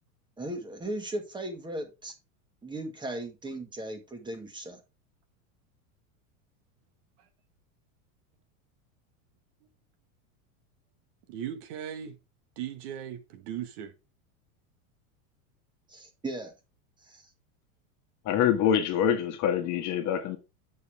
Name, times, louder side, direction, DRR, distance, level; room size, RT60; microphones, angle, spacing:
voice 1, 0.4-2.1 2.6-4.8 15.9-16.5 17.0-17.2, right 1 dB, 10° right, 1.8 m, -37 dB
voice 2, 11.3-12.2 12.6-13.9, right 10 dB, 55° right, 1.6 m, -37 dB
voice 3, 18.2-20.4, left 9 dB, 40° left, 1.5 m, -25 dB
8.2 x 7.0 x 3.6 m
supercardioid pair, 140°, 43 cm